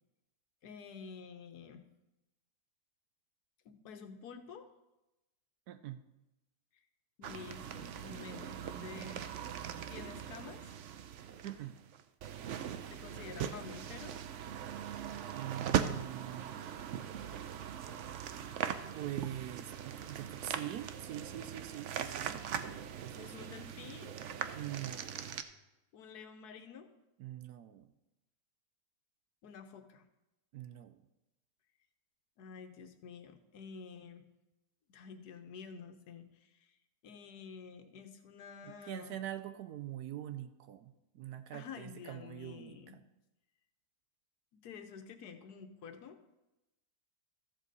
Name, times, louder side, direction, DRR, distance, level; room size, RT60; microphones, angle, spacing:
voice 1, 0.6-1.8 3.6-4.7 7.2-9.3 9.9-10.7 12.9-14.2 23.1-24.1 25.9-26.9 29.4-30.0 32.4-34.2 34.9-36.7 37.0-39.2 41.5-43.0 44.5-46.2, left 6 dB, 80° left, 8 dB, 1.4 m, -49 dB
voice 2, 5.7-6.0 11.4-11.8 15.3-16.6 18.9-23.5 24.5-25.4 27.2-27.9 30.5-31.0 38.6-43.0, right 12 dB, 80° right, 11 dB, 1.1 m, -44 dB
sound 1, 7.2-25.4, right 9 dB, 65° right, 0.8 m, -40 dB
13.5 x 7.5 x 4.1 m, 0.96 s
omnidirectional pair, 1.7 m